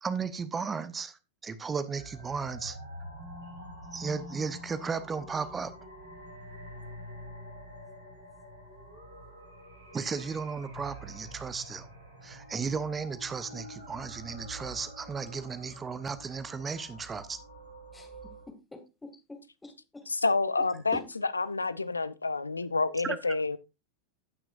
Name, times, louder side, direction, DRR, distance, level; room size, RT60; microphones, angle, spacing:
voice 1, 0.0-1.2 1.4-2.8 3.9-5.7 9.9-11.9 12.2-17.4, right 5 dB, 15° right, 0.9 m, -35 dB
sound 1, 2.0-18.5, equal, 75° right, 3.2 m, -47 dB
voice 2, 17.9-20.0 20.9-21.0, left 2 dB, 10° left, 2.2 m, -46 dB
voice 3, 20.1-21.0 21.3-23.6, left 3 dB, 80° left, 0.5 m, -28 dB
16.0 x 6.0 x 2.5 m
figure-of-eight pair, 90°, 0 cm